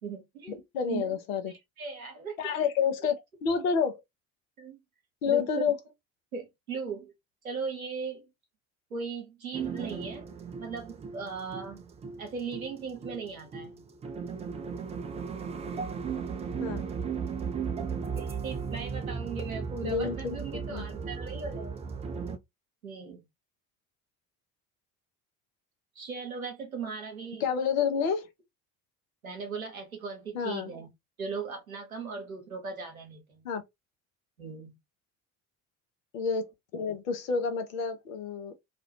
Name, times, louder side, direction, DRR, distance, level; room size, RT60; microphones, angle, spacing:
voice 1, 0.0-0.6 0.9-1.2 1.8-2.4 4.6-4.8 5.3-5.7 6.3-7.1 7.4-8.3 8.9-10.3 10.6-11.8 12.2-13.8 17.9-21.8 22.8-23.2 26.0-27.4 29.2-30.9 31.2-33.5 34.4-34.8, right 5 dB, 90° right, 0.6 m, -38 dB
voice 2, 0.7-1.5 2.4-4.0 5.2-5.8 16.6-16.8 19.8-20.4 20.7-20.8 27.4-28.3 30.3-30.7 33.4-33.6 36.1-38.6, left 6 dB, 75° left, 0.7 m, -29 dB
sound 1, 9.5-22.4, right 6 dB, 20° right, 0.3 m, -36 dB
2.4 x 2.2 x 2.6 m
figure-of-eight pair, 45°, 41 cm